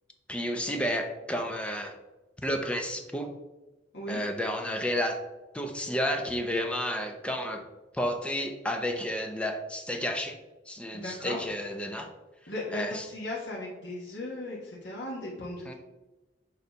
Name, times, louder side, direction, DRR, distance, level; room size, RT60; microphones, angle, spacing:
voice 1, 0.3-1.9 2.4-3.3 4.1-5.2 5.5-7.6 7.9-10.4 10.7-12.1 12.7-13.1 15.7-15.8, equal, 5° left, 4 dB, 0.7 m, -31 dB
voice 2, 11.0-11.4 12.5-15.7, left 1 dB, 65° left, -6 dB, 1.5 m, -37 dB
6.9 x 3.3 x 5.3 m, 1.1 s
head